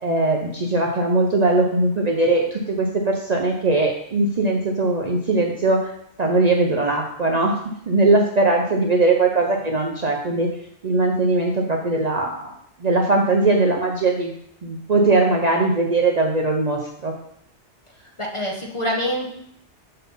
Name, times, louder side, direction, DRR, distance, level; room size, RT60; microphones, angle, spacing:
voice 1, 0.0-5.9 6.2-7.5 7.9-10.5 10.8-12.5 12.8-14.3 14.6-17.1, right 2 dB, 40° right, 0 dB, 0.7 m, -20 dB
voice 2, 18.2-19.3, equal, 25° left, -1 dB, 1.0 m, -25 dB
6.6 x 4.1 x 5.4 m, 0.71 s
omnidirectional pair, 1.2 m